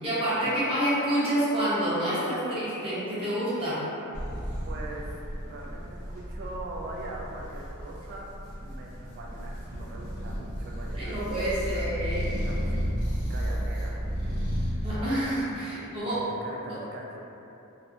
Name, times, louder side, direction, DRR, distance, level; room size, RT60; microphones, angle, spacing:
voice 1, 0.0-3.8 10.9-12.5 14.8-16.2, right 1 dB, 25° right, -11 dB, 0.8 m, -28 dB
sound 1, 4.1-14.9, equal, 80° left, 0.9 m, -33 dB
voice 2, 4.6-5.1 5.4-8.3 8.6-11.2 11.5-12.8 13.3-14.9 15.7-17.2, right 2 dB, 50° right, -2 dB, 0.3 m, -42 dB
2.6 x 2.1 x 2.4 m, 2.9 s
head